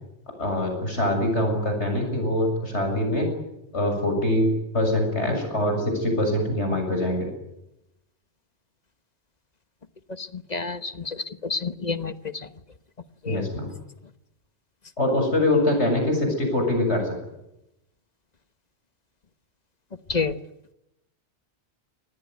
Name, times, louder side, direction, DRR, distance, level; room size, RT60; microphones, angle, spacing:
voice 1, 0.4-3.3 3.7-7.3 13.3-13.7 15.0-17.2, left 1 dB, 80° left, 4 dB, 7.4 m, -24 dB
voice 2, 10.5-11.1 11.5-12.1 13.3-13.4 20.1-20.3, left 4 dB, 40° left, 11 dB, 1.3 m, -28 dB
25.5 x 20.0 x 9.5 m, 0.89 s
omnidirectional pair, 1.1 m